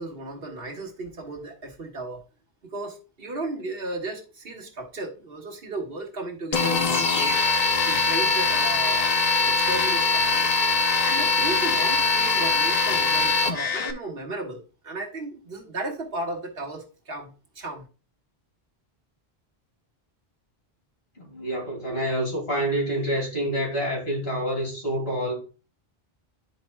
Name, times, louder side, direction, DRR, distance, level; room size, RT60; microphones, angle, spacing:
voice 1, 0.0-2.2 2.7-7.5 7.9-9.1 9.4-10.5 11.0-17.8, right 2 dB, 65° right, 1.6 m, -35 dB
sound 1, 6.5-13.9, left 4 dB, 45° left, 0.7 m, -22 dB
voice 2, 21.2-25.3, right 1 dB, 70° left, 2.5 m, -27 dB
12.0 x 4.3 x 2.3 m
omnidirectional pair, 1.1 m